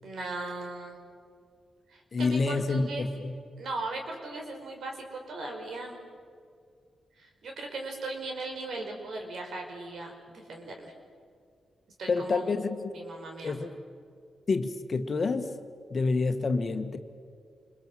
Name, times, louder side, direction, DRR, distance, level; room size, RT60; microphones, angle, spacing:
voice 1, 0.0-1.0 1.9-3.1 3.6-6.0 7.2-10.9 12.0-12.5 12.9-13.6, right 2 dB, 75° right, 2 dB, 5.1 m, -38 dB
voice 2, 2.1-3.4 12.1-12.9 13.4-13.7 14.5-15.5 15.9-17.0, left 3 dB, 50° left, 7 dB, 1.8 m, -28 dB
27.5 x 22.0 x 7.7 m, 2.2 s
cardioid pair, 60°, 0 cm